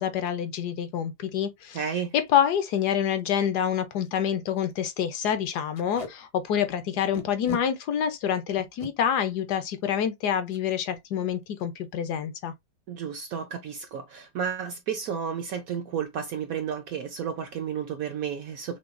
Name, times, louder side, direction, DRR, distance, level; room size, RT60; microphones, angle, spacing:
voice 1, 0.0-1.8 2.1-12.5, left 9 dB, 70° left, 1.1 m, -27 dB
voice 2, 1.7-2.1 12.9-18.8, right 7 dB, 65° right, 0.9 m, -32 dB
Packing tape duct tape, 2.1-2.3 2.7-2.8 3.1-3.2 3.7-3.8 4.0-4.2 4.6-4.7 5.7-6.1 7.1-7.6 8.6-8.9 10.5-10.6 11.0-11.2 11.4-11.8, left 1 dB, 35° left, 0.5 m, -39 dB
5.9 x 2.3 x 2.5 m
omnidirectional pair, 2.0 m